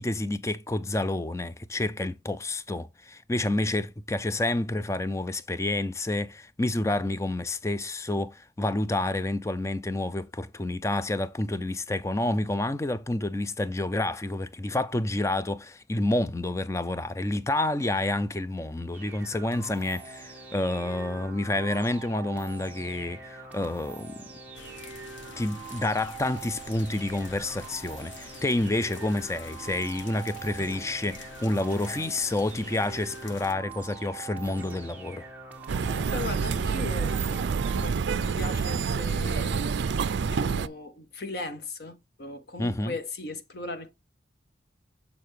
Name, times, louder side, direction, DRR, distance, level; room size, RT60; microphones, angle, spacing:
voice 1, 0.0-24.2 25.4-35.3 42.6-42.9, left 2 dB, 15° left, 0.4 m, -29 dB
sound 1, 18.9-37.9, right 4 dB, 10° right, 1.2 m, -43 dB
sound 2, 24.5-33.5, left 3 dB, 80° left, 1.1 m, -47 dB
sound 3, 35.7-40.7, right 5 dB, 70° right, 0.4 m, -27 dB
voice 2, 36.1-39.8 40.2-43.9, left 2 dB, 55° left, 0.9 m, -38 dB
6.8 x 6.6 x 3.2 m
head